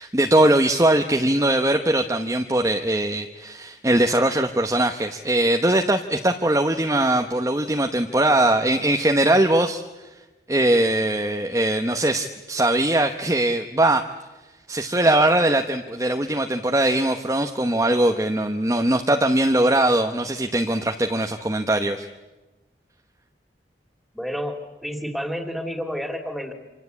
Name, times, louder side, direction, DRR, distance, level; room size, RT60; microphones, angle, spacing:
voice 1, 0.0-9.8 10.5-14.0 14.7-22.1, right 1 dB, 20° right, 5 dB, 1.0 m, -21 dB
voice 2, 24.1-24.6 24.8-26.5, equal, ahead, 6 dB, 2.7 m, -29 dB
27.0 x 26.0 x 8.4 m, 1.1 s
head